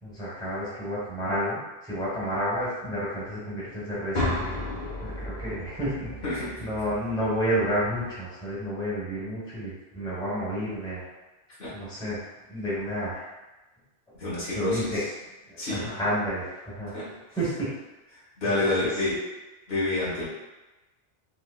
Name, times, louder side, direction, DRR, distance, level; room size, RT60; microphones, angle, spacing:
voice 1, 0.0-4.3 5.0-11.1 11.7-13.3 14.5-15.0 15.5-16.9 17.4-17.7 18.4-18.7, equal, 5° left, -9 dB, 1.0 m, -30 dB
sound 1, 4.1-8.1, left 1 dB, 50° left, 1.4 m, -34 dB
voice 2, 6.2-6.7 11.6-11.7 14.2-15.0 15.6-15.9 16.9-17.1 18.1-19.2 19.7-20.2, left 2 dB, 70° left, -9 dB, 1.6 m, -28 dB
4.8 x 2.0 x 2.3 m, 1.1 s
omnidirectional pair, 1.1 m